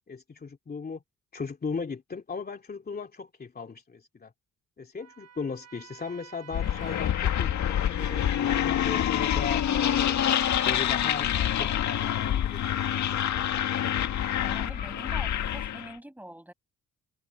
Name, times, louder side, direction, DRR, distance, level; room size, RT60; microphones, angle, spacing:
voice 1, 0.1-1.0 1.3-4.3 4.8-8.3 8.6-10.2 10.6-11.3 11.6-13.2 14.7-15.0, left 5 dB, 30° left, 2.8 m, -37 dB
Trumpet, 5.0-11.4, right 8 dB, 60° right, 6.2 m, -52 dB
sound 1, 6.5-15.9, left 10 dB, 70° left, 2.0 m, -26 dB
voice 2, 14.4-16.5, right 1 dB, 5° right, 6.2 m, -44 dB
open air
cardioid pair, 90°, 30 cm